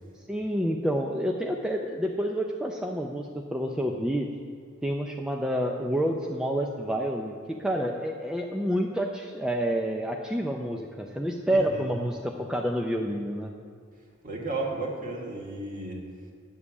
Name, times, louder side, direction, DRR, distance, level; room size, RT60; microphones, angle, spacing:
voice 1, 0.3-4.3 4.8-13.5, equal, 5° right, 1 dB, 0.5 m, -28 dB
voice 2, 11.5-11.9 14.2-16.0, right 2 dB, 40° right, -1 dB, 1.9 m, -33 dB
9.8 x 7.4 x 7.1 m, 2.1 s
head